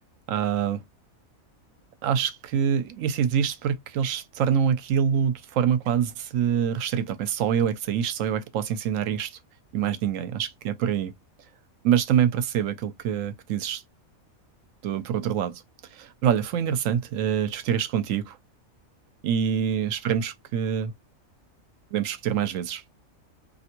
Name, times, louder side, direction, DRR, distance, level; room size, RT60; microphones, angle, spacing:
voice 1, 0.3-0.8 2.0-9.4 9.7-11.1 11.8-13.8 14.8-15.6 15.9-18.4 19.2-20.9 21.9-22.8, right 8 dB, 75° right, 1.0 m, -25 dB
3.3 x 2.5 x 2.9 m
omnidirectional pair, 1.4 m